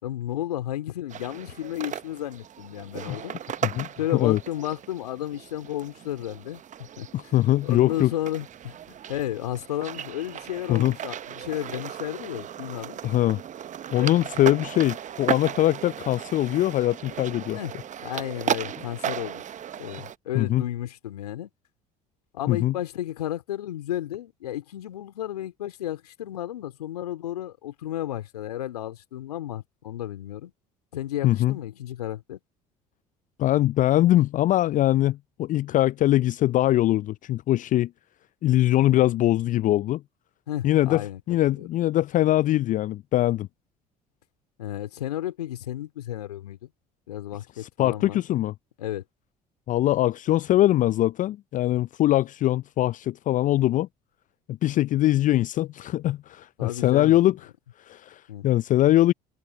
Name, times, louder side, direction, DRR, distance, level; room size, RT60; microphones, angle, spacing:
voice 1, 0.0-3.4 4.0-13.0 13.9-14.1 17.5-17.7 18.0-19.4 19.8-21.5 22.3-30.5 30.9-32.4 40.5-41.2 41.5-41.7 44.6-46.7 47.1-48.2 48.8-49.0 56.6-57.2 58.3-58.5, left 12 dB, 80° left, 2.8 m, -33 dB
sound 1, 1.1-20.1, right 9 dB, 40° right, 0.9 m, -36 dB
voice 2, 3.6-4.4 7.1-8.1 10.7-10.9 13.0-13.4 13.9-17.6 20.3-20.6 22.5-22.7 31.2-31.6 33.4-37.9 38.4-40.0 40.6-43.5 47.6-48.5 49.7-53.9 54.5-57.4 57.8-59.1, left 14 dB, 40° left, 0.4 m, -22 dB
hypercardioid pair, 60°, 20 cm